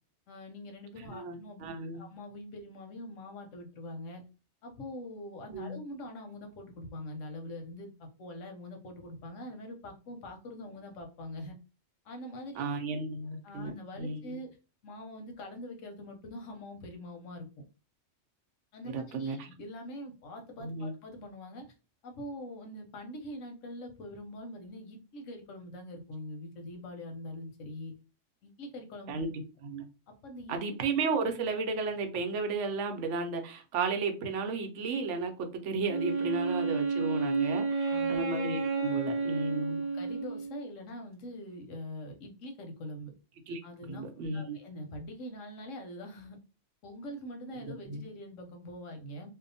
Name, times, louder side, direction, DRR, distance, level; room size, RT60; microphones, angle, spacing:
voice 1, 0.3-1.7 2.0-4.2 4.6-11.6 12.0-12.6 13.4-14.5 14.8-17.5 18.7-21.7 22.0-27.9 28.4-29.3 30.1-30.8 37.9-38.2 39.9-43.1 43.6-46.4 46.8-49.3, left 1 dB, 85° left, 1.1 m, -44 dB
voice 2, 1.1-2.0 5.5-5.8 12.6-13.7 14.0-14.4 18.9-19.5 20.6-20.9 29.1-29.3 29.6-29.9 30.5-39.8 43.5-43.6 43.9-44.6 47.9-48.0, right 4 dB, 75° right, 0.9 m, -33 dB
Wind instrument woodwind instrument, 35.9-40.7, right 4 dB, 30° right, 0.4 m, -31 dB
2.7 x 2.1 x 2.6 m
omnidirectional pair, 1.3 m